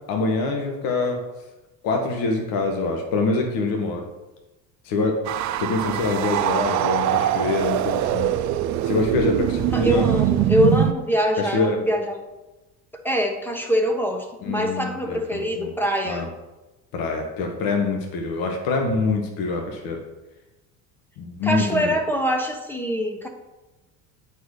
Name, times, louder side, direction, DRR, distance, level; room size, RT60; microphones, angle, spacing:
voice 1, 0.1-1.2 1.8-4.1 4.8-5.2 5.6-8.3 8.8-10.0 11.4-11.8 14.4-15.7 16.0-16.3 16.9-20.0 21.2-21.9, left 3 dB, 65° left, 2 dB, 1.4 m, -25 dB
sound 1, 5.3-10.9, right 12 dB, 50° right, 0.5 m, -23 dB
voice 2, 9.7-12.2 13.0-16.3 21.4-23.3, equal, 5° left, 4 dB, 1.0 m, -24 dB
8.9 x 4.6 x 4.9 m, 1.1 s
supercardioid pair, 115°, 37 cm